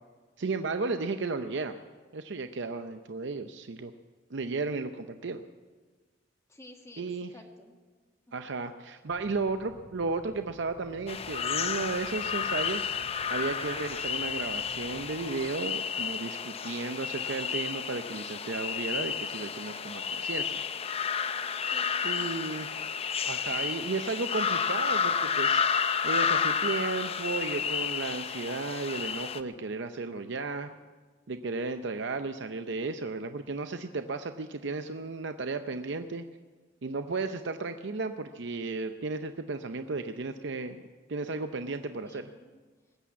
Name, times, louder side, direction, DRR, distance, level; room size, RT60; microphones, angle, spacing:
voice 1, 0.4-1.7 2.1-3.9 4.3-5.4 7.0-7.3 8.3-20.6 22.0-22.7 23.2-25.6 26.0-30.7 31.3-36.2 36.8-40.8 41.1-42.3, right 3 dB, 65° right, 8 dB, 0.6 m, -34 dB
voice 2, 6.5-7.7 8.3-8.6 21.6-21.9 22.1-22.7 42.0-42.6, left 1 dB, 15° left, 3 dB, 1.7 m, -52 dB
sound 1, 9.1-15.3, equal, 45° right, 1.7 m, -54 dB
sound 2, 11.1-29.4, left 6 dB, 30° left, 0.5 m, -31 dB
20.5 x 8.7 x 8.1 m, 1.4 s
head